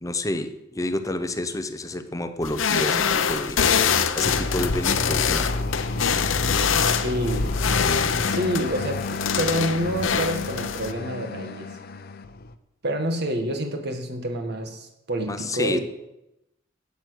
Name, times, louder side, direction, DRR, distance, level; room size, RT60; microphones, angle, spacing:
voice 1, 0.0-3.6 4.1-5.5 15.3-15.8, left 1 dB, 15° left, 9 dB, 0.7 m, -29 dB
sound 1, 2.4-10.9, left 7 dB, 80° left, 0.8 m, -24 dB
sound 2, 4.2-12.5, left 2 dB, 50° left, 0.7 m, -30 dB
voice 2, 6.8-7.6 8.3-11.7 12.8-15.8, equal, 55° right, 5 dB, 1.7 m, -28 dB
12.0 x 8.5 x 6.4 m, 0.90 s
head